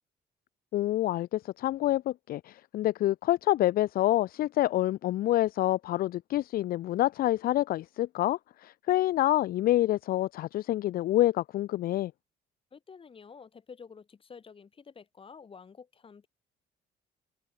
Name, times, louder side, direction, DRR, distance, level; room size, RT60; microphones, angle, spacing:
voice 1, 0.7-12.1, left 14 dB, 60° left, 0.6 m, -27 dB
voice 2, 12.7-16.3, left 6 dB, 30° left, 4.8 m, -50 dB
open air
cardioid pair, 110°, 17 cm